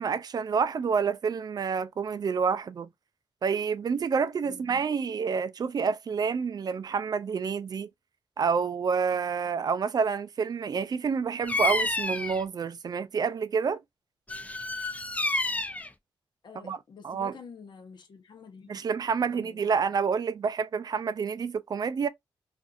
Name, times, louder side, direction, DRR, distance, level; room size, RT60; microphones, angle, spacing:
voice 1, 0.0-2.9 3.4-7.9 8.4-13.8 16.6-16.8 17.0-17.3 18.7-22.1, right 6 dB, 45° right, 0.4 m, -28 dB
voice 2, 4.4-4.8 16.4-18.8 19.2-19.8, left 5 dB, 55° left, 0.8 m, -48 dB
Bird vocalization bird call bird song, 11.4-12.4 14.3-15.9, left 2 dB, 15° left, 0.4 m, -29 dB
2.5 x 2.4 x 2.4 m
cardioid pair, 60°, 9 cm